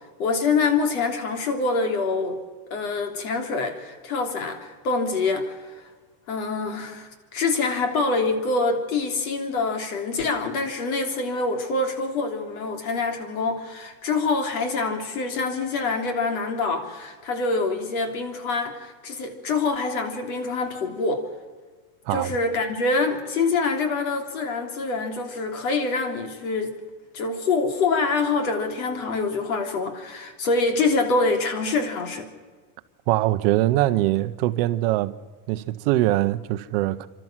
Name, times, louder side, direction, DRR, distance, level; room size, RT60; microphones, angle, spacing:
voice 1, 0.2-2.4 2.7-5.8 6.3-21.3 22.1-26.7 27.1-32.3, left 3 dB, 65° left, 3.4 m, -25 dB
voice 2, 33.1-35.1 35.5-37.1, right 16 dB, 40° right, 0.8 m, -22 dB
30.0 x 12.5 x 7.4 m
supercardioid pair, 175°, 45 cm